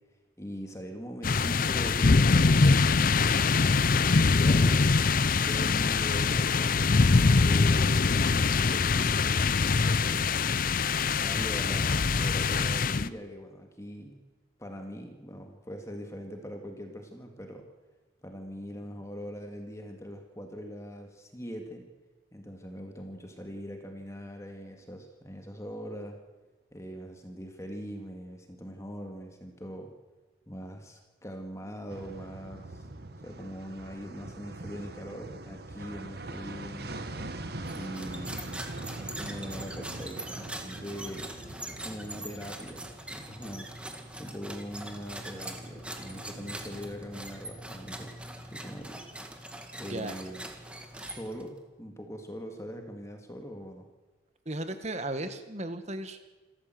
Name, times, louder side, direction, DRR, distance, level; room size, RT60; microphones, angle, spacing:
voice 1, 0.4-3.5 3.9-4.8 5.4-7.9 8.4-9.5 10.0-10.5 11.2-14.2 14.6-17.7 18.2-21.9 22.3-26.2 26.7-29.9 30.5-32.9 33.2-37.0 37.7-38.4 39.0-41.4 41.6-43.7 44.1-48.1 48.5-49.0 49.8-50.4 51.0-53.9, equal, 15° left, 4 dB, 2.0 m, -42 dB
sound 1, 1.2-13.1, left 4 dB, 45° left, 0.6 m, -23 dB
sound 2, 31.9-49.4 49.6-49.7, right 2 dB, 55° right, 1.6 m, -44 dB
sound 3, 37.6-51.6, right 1 dB, 5° right, 1.9 m, -42 dB
voice 2, 54.5-56.2, right 1 dB, 35° right, 9 dB, 1.7 m, -35 dB
27.5 x 13.5 x 7.8 m, 1.2 s
head